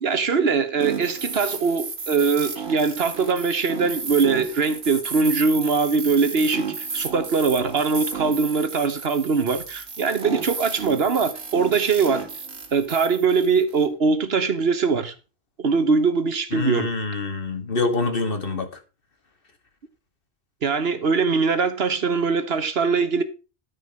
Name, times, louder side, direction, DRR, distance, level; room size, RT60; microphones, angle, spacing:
voice 1, 0.0-12.3 12.7-15.1 15.6-16.9 20.6-23.2, right 5 dB, 65° right, 1.3 m, -22 dB
sound 1, 0.8-13.9, right 4 dB, 90° right, 2.1 m, -33 dB
voice 2, 16.5-18.7, left 3 dB, 55° left, 1.9 m, -25 dB
13.0 x 5.5 x 5.3 m
omnidirectional pair, 1.1 m